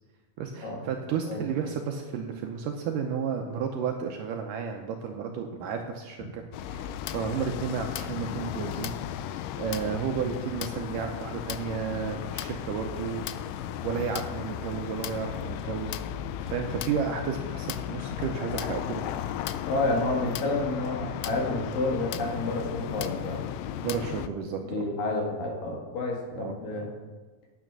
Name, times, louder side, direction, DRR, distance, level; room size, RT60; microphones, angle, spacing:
voice 1, 0.4-6.4 6.7-13.2 13.8-19.0 23.8-24.9 26.4-26.9, right 6 dB, 75° right, 3 dB, 2.0 m, -32 dB
sound 1, 6.5-24.3, left 10 dB, 90° left, 1.9 m, -35 dB
voice 2, 19.7-23.4 24.6-26.9, left 2 dB, 65° left, 0 dB, 3.3 m, -29 dB
9.2 x 8.9 x 6.1 m, 1.3 s
omnidirectional pair, 4.4 m